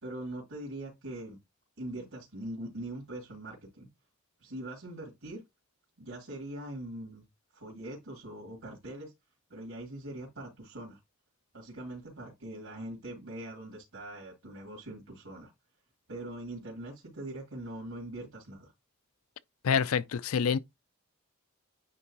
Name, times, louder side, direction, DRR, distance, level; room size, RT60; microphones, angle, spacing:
voice 1, 0.0-1.4 1.8-3.9 4.4-5.4 6.0-7.2 7.5-9.1 9.5-11.0 11.5-15.5 16.1-18.7, right 1 dB, 80° right, 2.8 m, -42 dB
voice 2, 19.6-20.6, left 6 dB, 85° left, 0.4 m, -27 dB
9.7 x 3.6 x 2.9 m
head